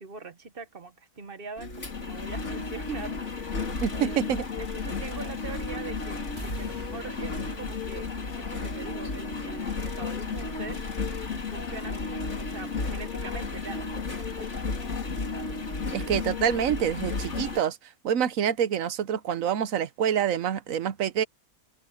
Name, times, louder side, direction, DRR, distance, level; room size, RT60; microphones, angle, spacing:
voice 1, 0.0-3.5 4.0-4.2 4.6-10.9 11.3-14.5, right 4 dB, 40° right, 1.2 m, -42 dB
Engine, 1.6-17.6, left 4 dB, 50° left, 2.6 m, -33 dB
sound 1, 2.3-16.8, left 1 dB, 75° left, 4.3 m, -42 dB
voice 2, 3.7-4.4 15.9-17.8 18.0-21.2, right 9 dB, 65° right, 1.2 m, -26 dB
sound 2, 6.4-12.5, right 1 dB, 25° right, 2.8 m, -49 dB
open air
omnidirectional pair, 1.5 m